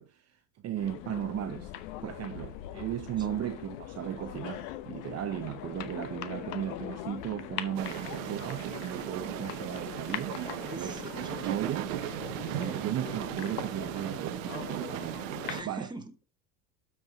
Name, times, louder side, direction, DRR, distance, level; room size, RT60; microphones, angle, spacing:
voice 1, 0.0-1.7 2.0-10.4 10.8-11.0 11.4-11.9 12.4-15.2 15.6-15.9, right 11 dB, 40° right, 0.8 m, -36 dB
sound 1, 0.8-15.6, left 13 dB, 80° left, 1.0 m, -41 dB
sound 2, 7.7-15.6, right 13 dB, 90° right, 0.9 m, -37 dB
voice 2, 10.6-11.8 15.5-16.3, right 2 dB, 10° right, 1.6 m, -44 dB
12.5 x 4.8 x 3.9 m
supercardioid pair, 100°, 38 cm